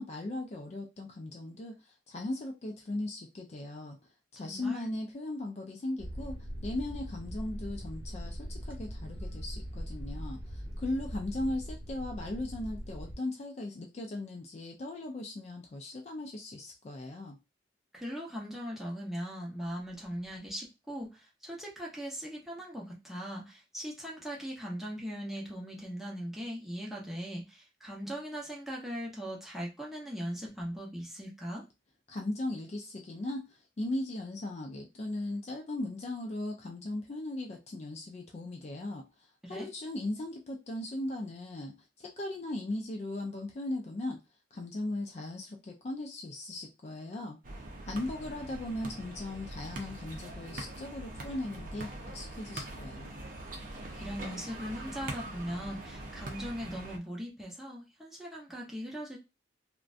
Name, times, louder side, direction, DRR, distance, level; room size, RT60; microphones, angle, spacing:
voice 1, 0.0-4.0 4.3-6.4 6.6-17.4 32.1-44.2 44.5-47.4 47.8-53.1, left 1 dB, 35° left, 0.4 m, -38 dB
voice 2, 4.4-4.9 17.9-31.6 39.4-39.7 54.0-59.2, equal, ahead, 0.7 m, -39 dB
sound 1, 6.0-13.2, equal, 25° right, 0.9 m, -41 dB
sound 2, 47.4-57.0, right 1 dB, 45° right, 0.5 m, -43 dB
2.5 x 2.1 x 2.4 m
head